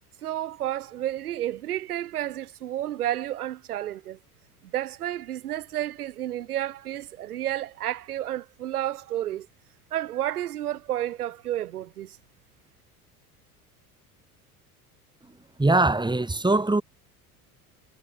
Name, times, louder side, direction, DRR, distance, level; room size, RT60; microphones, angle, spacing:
voice 1, 0.2-4.2 4.7-9.5 9.9-12.2, right 12 dB, 85° right, 1.9 m, -31 dB
voice 2, 15.6-16.8, right 2 dB, 10° right, 3.5 m, -21 dB
hypercardioid pair, 75°, 44 cm